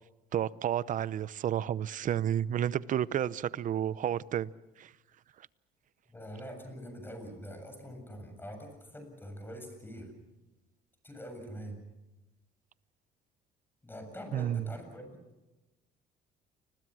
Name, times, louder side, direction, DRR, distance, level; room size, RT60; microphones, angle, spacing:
voice 1, 0.3-4.5 4.8-4.9 14.3-14.7, right 10 dB, 50° right, 0.7 m, -31 dB
voice 2, 6.1-10.2 11.0-11.8 13.8-15.1, equal, 10° left, 7.2 m, -44 dB
30.0 x 21.0 x 6.3 m
cardioid pair, 110°, 17 cm